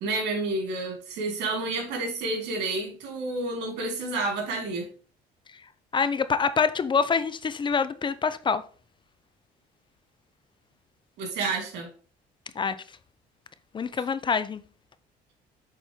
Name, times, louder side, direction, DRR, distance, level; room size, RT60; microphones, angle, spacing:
voice 1, 0.0-4.9 11.2-11.9, right 2 dB, 80° right, 2.5 m, -30 dB
voice 2, 5.9-8.6 12.6-12.7 13.7-14.6, left 5 dB, 30° left, 0.5 m, -25 dB
7.3 x 4.2 x 3.5 m
cardioid pair, 110°, 17 cm